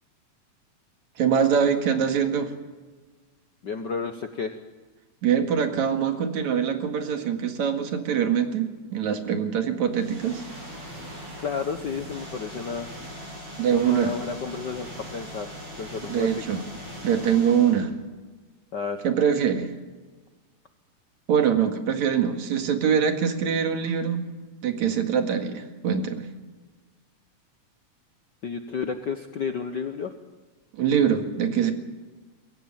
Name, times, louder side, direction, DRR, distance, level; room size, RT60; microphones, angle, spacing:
voice 1, 1.2-2.5 5.2-10.4 13.6-14.1 16.1-16.6 17.0-17.9 19.0-19.7 21.3-24.3 24.6-26.3 30.7-31.7, right 7 dB, 65° right, 6 dB, 3.1 m, -23 dB
voice 2, 3.6-4.6 11.4-12.9 13.7-16.4 18.7-19.0 28.4-30.1, left 5 dB, 75° left, 7 dB, 1.0 m, -32 dB
sound 1, 9.9-17.9, equal, 45° right, 8.5 m, -40 dB
23.0 x 16.0 x 9.0 m, 1.3 s
omnidirectional pair, 3.5 m